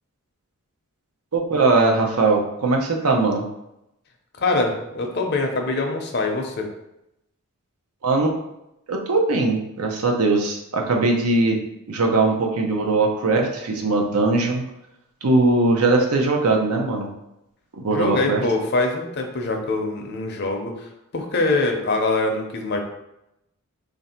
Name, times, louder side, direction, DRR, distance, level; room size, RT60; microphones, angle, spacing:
voice 1, 1.3-3.5 8.0-8.3 8.9-11.6 11.9-14.6 15.2-17.1 17.8-18.4, right 3 dB, 80° right, 2 dB, 0.7 m, -20 dB
voice 2, 4.4-6.7 17.9-22.8, left 2 dB, 50° left, 3 dB, 0.6 m, -24 dB
3.2 x 2.6 x 4.2 m, 0.86 s
head